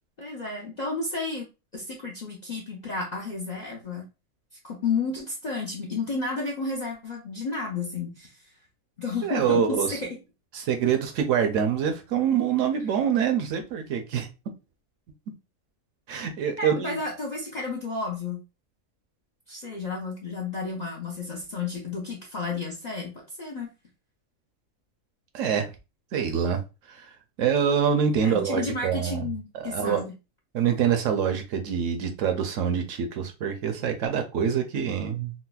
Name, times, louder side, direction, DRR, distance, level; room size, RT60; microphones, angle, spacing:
voice 1, 0.2-1.5 1.7-4.1 4.6-8.4 9.0-10.2 16.6-18.4 19.5-23.7 28.2-30.1, left 3 dB, 50° left, -1 dB, 0.5 m, -32 dB
voice 2, 9.2-10.0 10.5-14.3 16.1-17.0 25.3-25.7 26.1-26.6 26.9-27.1 27.4-29.3 29.6-30.0 30.5-35.3, right 8 dB, 70° right, 6 dB, 0.9 m, -25 dB
3.9 x 2.0 x 2.2 m, 0.28 s
omnidirectional pair, 1.4 m